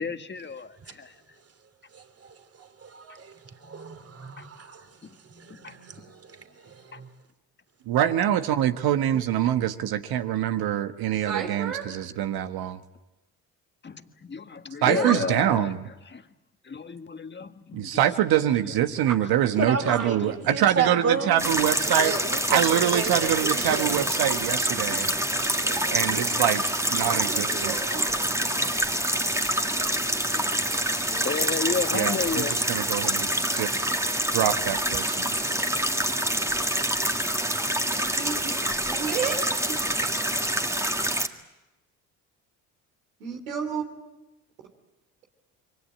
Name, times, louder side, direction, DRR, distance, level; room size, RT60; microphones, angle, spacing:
voice 1, 0.0-1.1 3.1-3.2 3.8-3.9 4.4-4.5 5.0-5.2 5.5-6.1 6.9-7.0 13.8-15.7 16.0-16.3 16.6-18.0 18.3-18.7 19.8-19.9 24.8-25.0 25.5-25.8 26.1-26.4 27.5-27.6 27.9-28.1 28.5-29.0 29.3-29.5 30.3-32.5, left 5 dB, 25° left, 1.7 m, -34 dB
voice 2, 1.9-4.9 5.3-7.1 19.6-21.4 21.9-24.1 25.5-26.5, right 5 dB, 35° right, 3.1 m, -33 dB
voice 3, 7.9-12.8 14.8-15.8 17.7-22.1 22.5-25.1 25.9-26.6 26.9-27.7 31.9-33.7 34.3-35.3, right 11 dB, 65° right, 1.5 m, -25 dB
voice 4, 11.2-11.8 14.8-15.2 19.6-20.5 27.0-28.4 37.9-39.4 39.7-39.8 43.2-43.8, right 6 dB, 90° right, 3.1 m, -33 dB
sound 1, 21.4-41.3, right 1 dB, 5° right, 2.1 m, -26 dB
27.0 x 23.5 x 8.6 m
hypercardioid pair, 60°, 40 cm